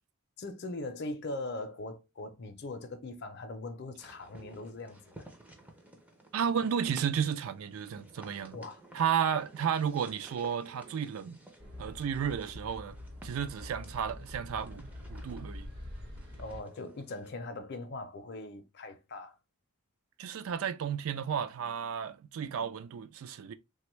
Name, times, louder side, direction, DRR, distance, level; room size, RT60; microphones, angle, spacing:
voice 1, 0.4-5.3 8.5-8.8 16.4-19.4, left 2 dB, 50° left, 0.5 m, -41 dB
sound 1, 4.0-17.3, right 1 dB, 5° right, 0.4 m, -54 dB
voice 2, 6.3-8.6 8.9-11.4 11.8-13.0 13.2-15.7 20.2-23.5, right 8 dB, 75° right, 0.3 m, -33 dB
sound 2, 11.6-16.6, left 1 dB, 45° right, 0.9 m, -45 dB
3.3 x 2.2 x 2.9 m
head